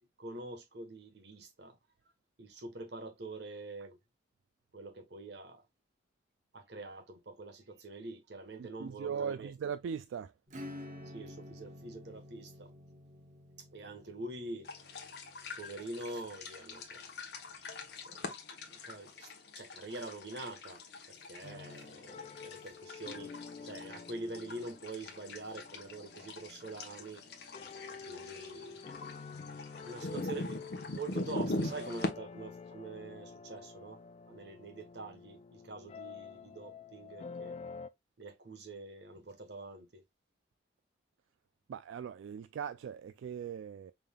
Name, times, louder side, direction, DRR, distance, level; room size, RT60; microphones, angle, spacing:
voice 1, 0.2-1.8 2.4-4.0 4.7-5.6 6.5-9.5 11.1-12.7 13.7-14.7 15.6-17.1 18.1-18.3 18.7-19.3 19.5-20.8 21.1-23.3 23.6-27.2 28.1-28.8 29.8-34.0 34.3-37.6 38.2-40.0, right 2 dB, 60° right, 1.1 m, -45 dB
voice 2, 8.6-10.3 41.7-43.9, right 7 dB, 85° right, 0.3 m, -39 dB
Acoustic guitar / Strum, 10.5-16.7, left 1 dB, 40° right, 0.9 m, -50 dB
sound 1, 14.6-32.1, left 2 dB, 60° left, 0.9 m, -43 dB
sound 2, 21.4-37.9, left 5 dB, 35° left, 0.3 m, -49 dB
5.4 x 3.5 x 2.2 m
head